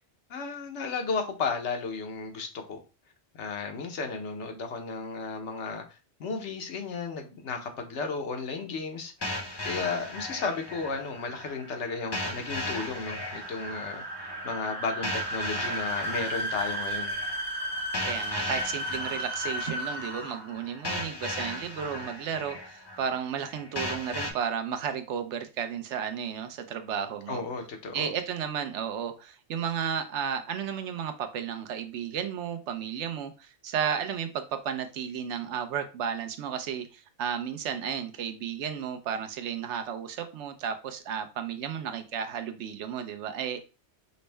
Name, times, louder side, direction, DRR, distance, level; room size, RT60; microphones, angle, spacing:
voice 1, 0.3-2.8 3.3-5.8 6.2-17.2 27.3-28.1, left 4 dB, 80° left, 4 dB, 1.1 m, -34 dB
sound 1, 9.2-24.3, left 1 dB, 30° left, 0.5 m, -37 dB
sound 2, 10.4-20.6, right 1 dB, 60° right, 1.3 m, -35 dB
voice 2, 18.0-27.4 27.9-43.6, right 8 dB, 80° right, 7 dB, 0.9 m, -33 dB
5.2 x 2.1 x 3.2 m, 0.31 s
omnidirectional pair, 1.2 m